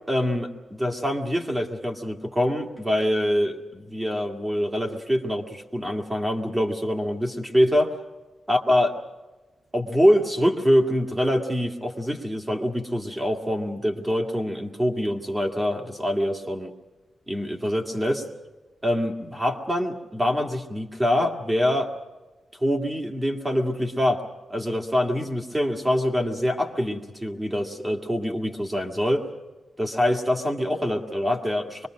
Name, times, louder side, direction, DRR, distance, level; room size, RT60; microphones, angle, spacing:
voice 1, 0.1-7.9 8.5-8.9 9.7-16.7 17.3-18.2 18.8-21.9 22.6-24.2 24.5-29.3 29.8-31.9, equal, 15° right, 3 dB, 2.0 m, -25 dB
25.0 x 22.0 x 6.3 m, 1.2 s
wide cardioid pair, 170°, 0 cm